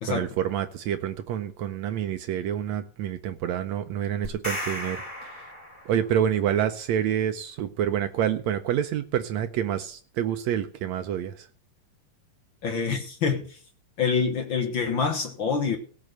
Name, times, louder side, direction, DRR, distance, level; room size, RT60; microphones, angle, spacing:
voice 1, 0.1-5.4 5.9-11.5, right 10 dB, 80° right, 1.6 m, -28 dB
sound 1, 4.2-6.2, left 1 dB, 15° left, 4.3 m, -35 dB
voice 2, 12.6-13.6 14.0-15.8, left 5 dB, 60° left, 1.2 m, -26 dB
17.5 x 6.3 x 6.6 m
omnidirectional pair, 4.0 m